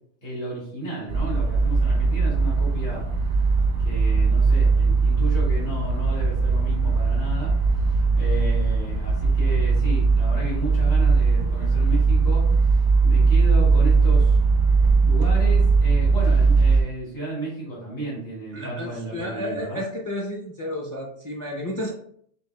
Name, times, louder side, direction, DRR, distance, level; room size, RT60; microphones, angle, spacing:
voice 1, 0.2-3.0 3.8-14.4 15.0-19.8, right 1 dB, 70° left, -6 dB, 2.0 m, -33 dB
sound 1, 1.1-16.8, right 4 dB, 85° right, 1.1 m, -19 dB
voice 2, 18.5-21.9, left 1 dB, 25° left, -1 dB, 0.4 m, -32 dB
6.5 x 2.4 x 2.2 m, 0.65 s
omnidirectional pair, 1.1 m